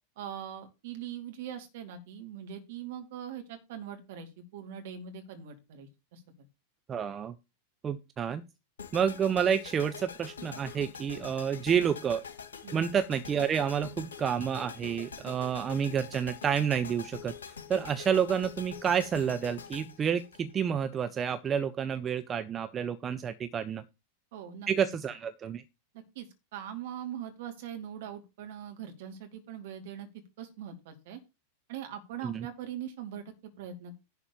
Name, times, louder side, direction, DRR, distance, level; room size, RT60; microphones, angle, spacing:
voice 1, 0.2-6.5 12.6-12.8 24.3-24.7 26.1-30.1 30.4-31.2 31.7-33.9, right 9 dB, 55° right, 5 dB, 2.5 m, -42 dB
voice 2, 6.9-7.3 7.8-8.4 8.9-12.2 12.7-23.8 24.7-25.6 32.2-32.5, right 8 dB, 25° right, 10 dB, 0.7 m, -29 dB
sound 1, 8.8-21.0, left 6 dB, 65° left, 2.4 m, -45 dB
11.0 x 4.2 x 6.9 m, 0.27 s
figure-of-eight pair, 90°, 0 cm